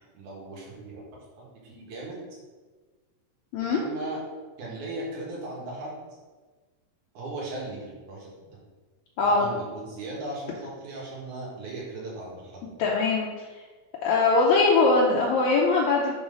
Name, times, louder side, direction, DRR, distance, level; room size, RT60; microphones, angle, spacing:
voice 1, 0.1-1.0 1.4-2.2 3.6-4.2 4.6-5.9 7.1-8.5 9.2-12.8, right 2 dB, 70° right, -4 dB, 3.0 m, -37 dB
voice 2, 12.8-13.3 14.0-16.1, left 3 dB, 75° left, -3 dB, 1.9 m, -21 dB
6.2 x 3.9 x 5.2 m, 1.3 s
omnidirectional pair, 3.6 m